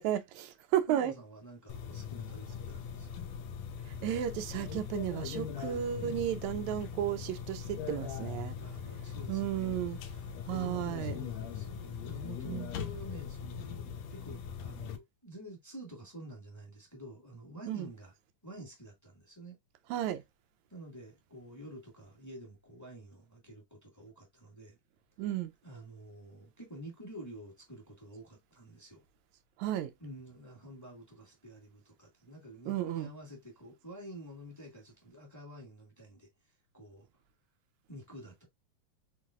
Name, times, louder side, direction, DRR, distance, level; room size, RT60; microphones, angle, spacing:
voice 1, 0.0-1.1 3.9-8.6 9.3-10.0 10.5-11.2 12.5-12.7 17.7-17.9 19.9-20.2 25.2-25.5 29.6-29.9 32.7-33.1, right 11 dB, 90° right, 2.0 m, -33 dB
voice 2, 0.9-3.2 6.0-6.7 8.5-18.1 18.4-19.6 20.7-24.8 25.6-29.0 30.0-37.1 37.9-38.4, right 1 dB, 10° left, 1.0 m, -49 dB
sound 1, 1.7-15.0, left 7 dB, 75° left, 1.8 m, -40 dB
5.7 x 3.5 x 2.4 m
omnidirectional pair, 3.3 m